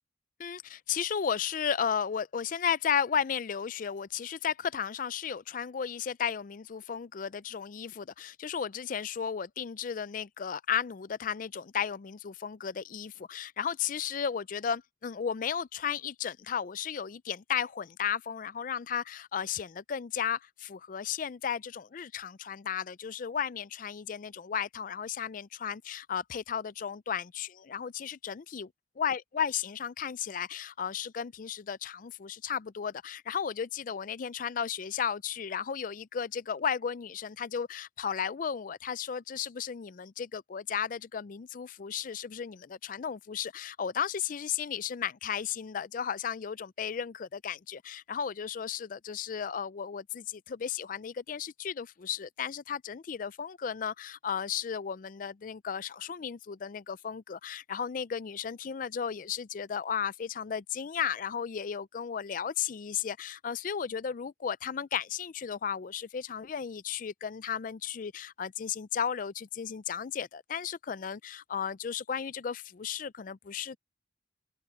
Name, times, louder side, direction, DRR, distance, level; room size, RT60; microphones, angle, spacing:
voice 1, 0.4-28.7 29.0-73.8, left 7 dB, 45° left, 0.4 m, -34 dB
open air
head